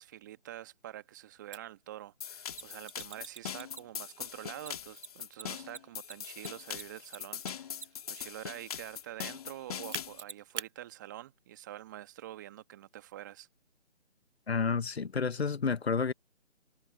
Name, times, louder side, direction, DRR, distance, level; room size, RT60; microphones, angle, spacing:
voice 1, 0.0-7.7 8.1-13.5, right 13 dB, 15° right, 1.4 m, -46 dB
Mechanisms, 1.5-1.6 2.5-4.1 4.6-8.1 9.9-10.7, right 5 dB, 75° right, 1.0 m, -43 dB
sound 1, 2.2-10.2, left 8 dB, 30° left, 2.8 m, -42 dB
voice 2, 14.5-16.1, left 5 dB, 60° left, 1.2 m, -30 dB
figure-of-eight pair, 155°, 35 cm